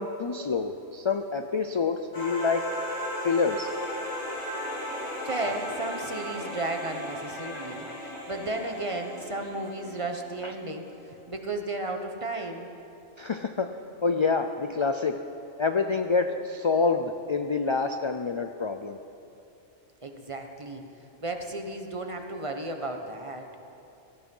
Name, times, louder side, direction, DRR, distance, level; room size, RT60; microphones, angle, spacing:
voice 1, 0.0-2.7 3.2-3.7 5.5-5.6 7.5-7.6 10.4-10.5 13.2-13.8 14.0-15.2 15.6-19.0, left 4 dB, 50° left, 7 dB, 0.3 m, -27 dB
sound 1, 2.1-10.7, left 1 dB, 80° left, 3.5 m, -36 dB
voice 2, 5.2-12.7 20.0-20.8 21.2-23.5, right 2 dB, 25° right, 4 dB, 1.1 m, -34 dB
17.5 x 13.5 x 5.5 m, 2.8 s
omnidirectional pair, 1.2 m